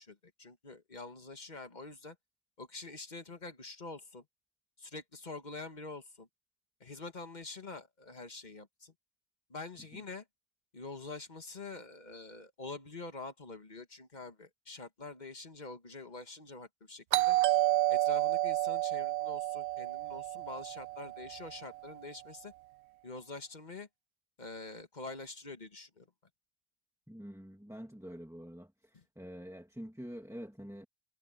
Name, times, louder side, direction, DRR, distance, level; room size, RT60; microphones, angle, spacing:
voice 1, 0.0-2.2 2.6-4.2 4.8-6.3 6.8-8.9 9.5-10.2 10.7-17.4 17.9-22.5 23.0-23.9 24.4-26.1 28.9-29.0, left 3 dB, 40° left, 1.7 m, -46 dB
Doorbell, 17.1-21.7, right 16 dB, 75° right, 0.8 m, -30 dB
voice 2, 27.1-30.9, equal, 5° right, 1.8 m, -46 dB
omnidirectional pair, 1.2 m